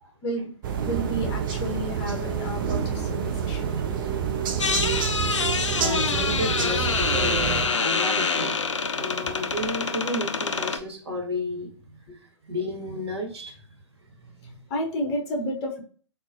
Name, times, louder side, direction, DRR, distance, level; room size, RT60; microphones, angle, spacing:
sound 1, 0.6-7.7, right 7 dB, 45° right, 0.4 m, -28 dB
voice 1, 0.8-3.7 9.2-9.3 14.7-15.8, equal, 30° left, 0 dB, 0.7 m, -31 dB
sound 2, 3.5-11.0, right 11 dB, 25° right, 1.1 m, -39 dB
sound 3, 4.6-10.8, left 5 dB, 75° left, 0.4 m, -26 dB
voice 2, 5.7-8.6 9.0-11.7 12.1-13.6 14.1-14.6, left 1 dB, 60° right, 2 dB, 0.9 m, -32 dB
3.8 x 2.1 x 2.5 m, 0.42 s
figure-of-eight pair, 120°, 15 cm